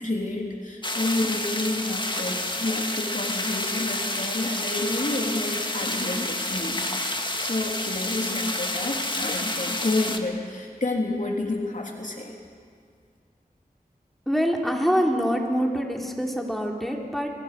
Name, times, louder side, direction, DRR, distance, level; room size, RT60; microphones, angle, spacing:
voice 1, 0.0-12.3, left 2 dB, 55° left, 0 dB, 3.3 m, -29 dB
sound 1, 0.8-10.2, left 1 dB, 30° left, 2.0 m, -29 dB
voice 2, 14.3-17.3, equal, ahead, 0 dB, 3.8 m, -25 dB
28.0 x 21.0 x 6.8 m, 2.1 s
wide cardioid pair, 45°, 16 cm